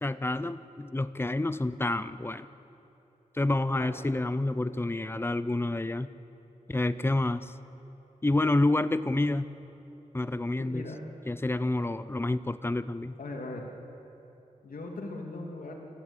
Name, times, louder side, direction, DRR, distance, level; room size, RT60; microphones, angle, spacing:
voice 1, 0.0-2.5 3.3-6.1 6.7-7.5 8.2-9.5 10.1-10.8 11.3-13.2, left 2 dB, 15° left, 13 dB, 0.6 m, -28 dB
voice 2, 3.7-4.0 10.6-11.0 13.2-13.6 14.6-15.8, left 2 dB, 85° left, 1 dB, 2.8 m, -39 dB
28.0 x 14.5 x 8.5 m, 3.0 s
wide cardioid pair, 110°, 14 cm